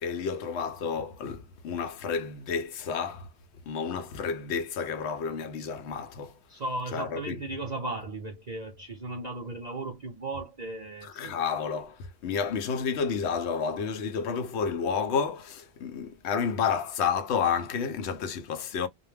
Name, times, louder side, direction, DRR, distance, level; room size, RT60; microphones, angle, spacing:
voice 1, 0.0-3.3 3.7-6.4 6.9-7.4 11.0-18.9, left 6 dB, 85° left, 0.9 m, -30 dB
voice 2, 6.5-11.4, right 2 dB, 45° right, 0.7 m, -36 dB
2.2 x 2.1 x 3.2 m
omnidirectional pair, 1.1 m